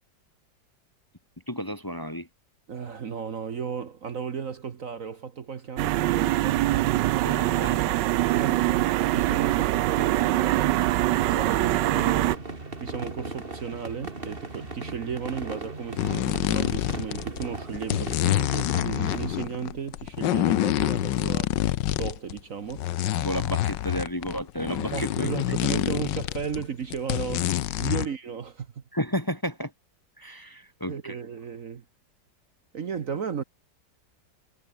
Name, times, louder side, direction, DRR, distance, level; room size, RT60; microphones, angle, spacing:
voice 1, 1.5-2.3 7.2-8.0 23.2-25.3 25.7-25.9 28.9-29.7 30.2-31.2, equal, 10° left, 1.5 m, -32 dB
voice 2, 2.7-6.6 8.3-10.9 11.3-12.4 12.8-21.5 21.9-22.8 24.9-28.8 30.8-31.8 32.7-33.4, right 7 dB, 50° right, 1.5 m, -34 dB
sound 1, 5.8-12.4, right 16 dB, 80° right, 1.2 m, -23 dB
sound 2, 11.4-19.3, right 3 dB, 30° right, 3.0 m, -38 dB
sound 3, 16.0-17.5 17.7-22.4 22.7-26.6 26.9-28.1, left 14 dB, 85° left, 1.4 m, -27 dB
omnidirectional pair, 1.9 m